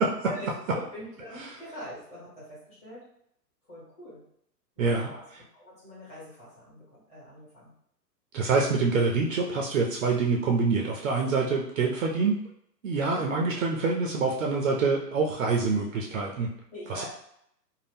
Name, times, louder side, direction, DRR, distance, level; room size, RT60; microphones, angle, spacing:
voice 1, 0.3-3.1 3.7-4.2 4.8-5.2 5.5-7.7 13.1-13.3 16.7-17.0, equal, 15° left, -9 dB, 1.3 m, -43 dB
voice 2, 4.8-5.1 8.3-12.4 12.8-16.5 16.9-17.0, right 4 dB, 55° right, 0 dB, 0.5 m, -26 dB
2.6 x 2.1 x 3.4 m, 0.72 s
hypercardioid pair, 145°, 50 cm